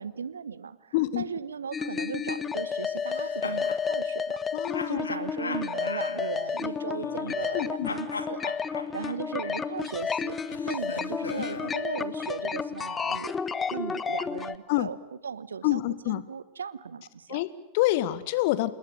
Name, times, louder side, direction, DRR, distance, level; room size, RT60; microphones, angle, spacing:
voice 1, 0.0-10.4 10.7-15.0 15.2-17.4, right 6 dB, 70° right, 17 dB, 1.2 m, -37 dB
voice 2, 0.9-1.2 4.5-5.0 7.5-7.9 11.3-11.4 14.7-14.9 15.6-16.2 17.3-18.7, left 17 dB, 50° left, 16 dB, 1.7 m, -27 dB
sound 1, 1.7-14.6, left 6 dB, 20° left, 1.2 m, -31 dB
sound 2, 3.0-3.8 4.7-7.6 7.8-11.8, left 4 dB, 75° left, 2.2 m, -39 dB
28.0 x 21.0 x 9.2 m, 0.94 s
figure-of-eight pair, 90°, 0 cm